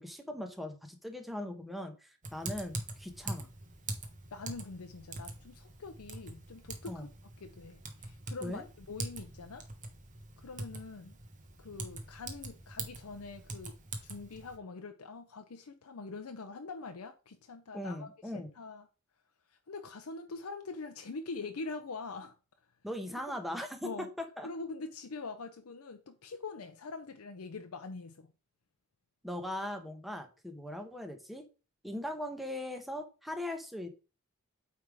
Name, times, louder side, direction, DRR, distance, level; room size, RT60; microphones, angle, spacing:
voice 1, 0.0-3.5 6.9-7.1 8.4-8.6 17.7-18.5 22.8-23.9 24.4-24.5 29.2-31.4 31.8-33.9, left 1 dB, ahead, 1.0 m, -39 dB
Typing, 2.2-14.6, right 2 dB, 35° right, 1.2 m, -44 dB
voice 2, 4.3-7.1 7.4-9.7 10.4-11.2 11.6-18.9 19.5-22.3 23.8-24.1 24.4-28.3, left 3 dB, 75° left, 0.6 m, -44 dB
8.8 x 3.5 x 4.8 m
head